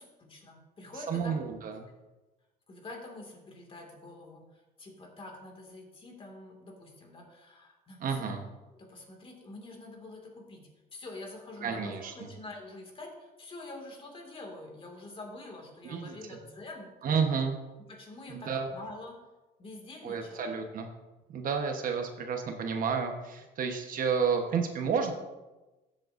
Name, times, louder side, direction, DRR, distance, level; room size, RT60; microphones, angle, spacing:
voice 1, 0.0-1.4 2.7-8.4 8.7-16.9 17.9-19.2 19.6-20.6, left 2 dB, 30° left, 2 dB, 2.1 m, -46 dB
voice 2, 1.1-1.8 8.0-8.4 11.6-12.1 15.8-16.2 17.0-17.6 18.3-18.7 20.0-20.9 21.3-25.1, right 6 dB, 55° right, 4 dB, 1.1 m, -30 dB
13.0 x 7.7 x 2.6 m, 1.1 s
cardioid pair, 110°, 17 cm